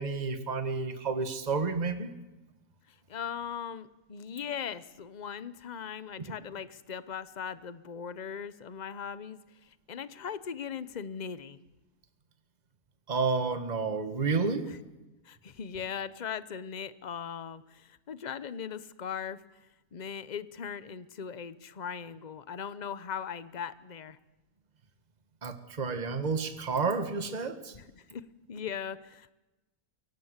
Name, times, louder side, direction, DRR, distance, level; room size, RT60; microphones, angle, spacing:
voice 1, 0.0-2.1 13.1-14.7 25.4-27.7, right 4 dB, 25° right, 9 dB, 1.6 m, -30 dB
voice 2, 2.9-11.6 14.6-14.8 15.2-19.4 19.9-24.2 27.7-29.3, left 7 dB, 35° left, 15 dB, 0.8 m, -39 dB
23.0 x 18.0 x 8.2 m, 1.1 s
omnidirectional pair, 1.6 m